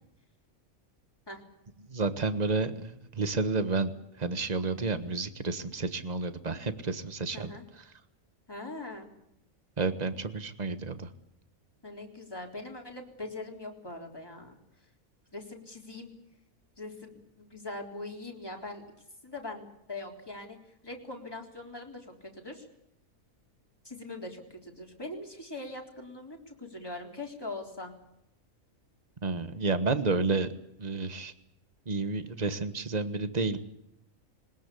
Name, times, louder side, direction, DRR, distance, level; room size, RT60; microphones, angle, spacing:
voice 1, 1.9-3.9 4.2-7.5 9.8-11.1 29.2-30.5 30.8-31.3 31.9-33.6, right 4 dB, 30° right, 11 dB, 1.5 m, -30 dB
voice 2, 7.3-7.6 8.5-9.1 11.8-14.6 15.3-16.1 16.8-18.8 19.2-20.6 20.8-22.7 23.8-27.9, left 2 dB, 15° left, 1 dB, 3.6 m, -42 dB
21.0 x 20.0 x 8.4 m, 0.81 s
omnidirectional pair, 1.4 m